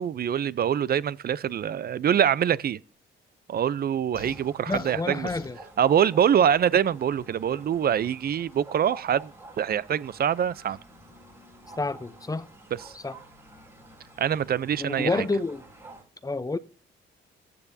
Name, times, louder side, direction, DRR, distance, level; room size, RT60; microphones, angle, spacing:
voice 1, 0.0-2.8 3.5-5.3 5.8-9.3 9.6-10.8 12.9-13.0 14.2-15.2, right 9 dB, 50° right, 0.6 m, -24 dB
sound 1, 4.1-5.6, left 7 dB, 50° left, 1.1 m, -45 dB
sound 2, 4.1-16.0, right 2 dB, 15° right, 6.7 m, -49 dB
voice 2, 4.7-5.6 11.8-12.5 12.9-13.2 14.8-15.6 16.2-16.6, left 3 dB, 20° left, 0.7 m, -29 dB
14.5 x 9.5 x 2.8 m
cardioid pair, 90°, 20 cm